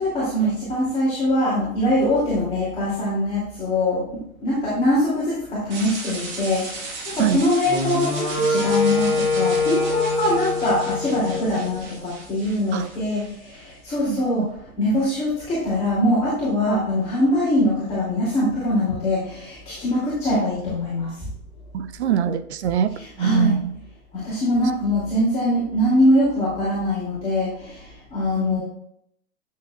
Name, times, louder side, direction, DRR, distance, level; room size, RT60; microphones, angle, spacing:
voice 1, 0.0-21.1 22.9-23.6 24.1-28.6, left 1 dB, 15° left, -8 dB, 2.9 m, -23 dB
sound 1, 5.7-13.7, right 3 dB, 25° right, 1.6 m, -36 dB
Wind instrument woodwind instrument, 7.7-11.9, left 3 dB, ahead, 2.7 m, -24 dB
voice 2, 14.1-14.5 21.7-22.9 23.2-23.7 28.4-28.6, right 8 dB, 50° right, 12 dB, 0.7 m, -23 dB
10.0 x 7.3 x 2.4 m, 0.72 s
figure-of-eight pair, 120°, 43 cm